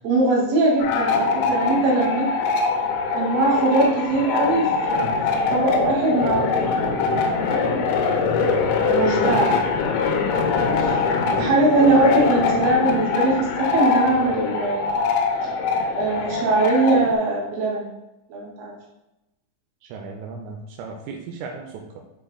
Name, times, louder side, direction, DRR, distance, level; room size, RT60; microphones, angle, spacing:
voice 1, 0.0-2.3 3.1-5.1 5.5-7.3 7.6-7.7 8.8-9.7 10.8-10.9 11.3-15.0 15.9-17.9 18.3-18.8, right 2 dB, 55° right, -5 dB, 3.5 m, -21 dB
sound 1, 0.8-17.1, left 4 dB, 85° left, 3.1 m, -23 dB
voice 2, 10.5-11.8 19.8-21.9, right 5 dB, 85° right, 2 dB, 3.2 m, -35 dB
12.5 x 4.3 x 2.2 m, 0.95 s
omnidirectional pair, 5.8 m